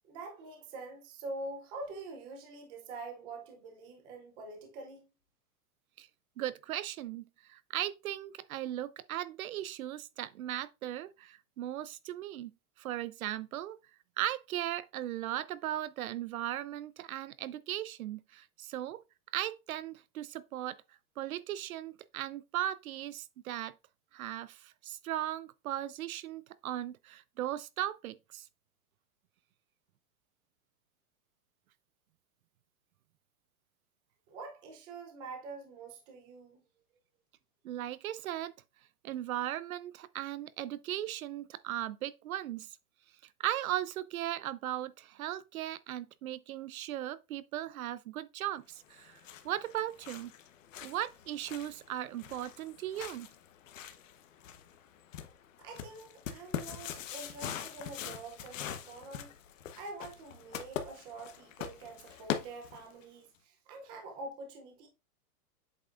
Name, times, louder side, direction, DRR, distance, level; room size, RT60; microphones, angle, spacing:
voice 1, 0.0-5.1 34.3-36.6 55.6-59.3 59.8-64.9, right 3 dB, 10° right, 0.5 m, -45 dB
voice 2, 6.4-12.5 12.8-13.8 14.2-19.0 19.3-20.8 21.2-23.7 24.1-28.5 37.6-38.5 39.0-42.8 43.4-50.3 50.8-53.3, right 13 dB, 65° right, 0.6 m, -37 dB
sound 1, 48.9-63.0, left 9 dB, 55° left, 1.1 m, -43 dB
7.9 x 5.9 x 2.4 m
supercardioid pair, 170°, 45 cm